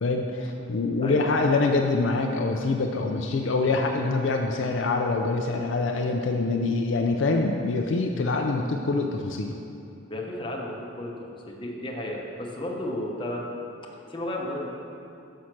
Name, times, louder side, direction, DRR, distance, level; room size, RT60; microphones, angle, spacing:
voice 1, 0.0-9.5, left 3 dB, 65° left, 2 dB, 0.4 m, -25 dB
voice 2, 10.1-11.1 11.5-13.4 13.8-14.7, left 1 dB, 25° left, -2 dB, 0.9 m, -33 dB
6.3 x 5.6 x 5.9 m, 2.6 s
head